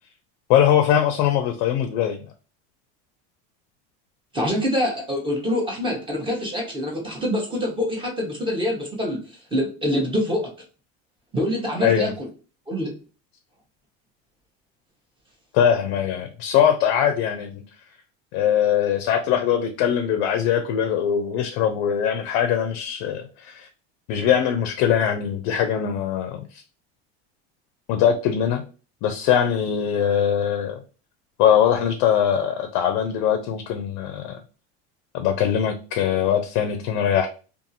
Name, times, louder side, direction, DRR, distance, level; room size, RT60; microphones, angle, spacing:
voice 1, 0.5-2.2 11.8-12.1 15.5-17.6 18.3-23.7 24.1-26.6 27.9-28.6 29.0-30.8 31.4-34.4 35.1-37.3, left 9 dB, 60° left, 7 dB, 0.5 m, -21 dB
voice 2, 4.3-9.2 9.5-10.5 11.3-12.3 12.7-12.9, left 1 dB, 15° right, 0 dB, 0.8 m, -25 dB
2.6 x 2.4 x 2.7 m, 0.36 s
supercardioid pair, 130°, 32 cm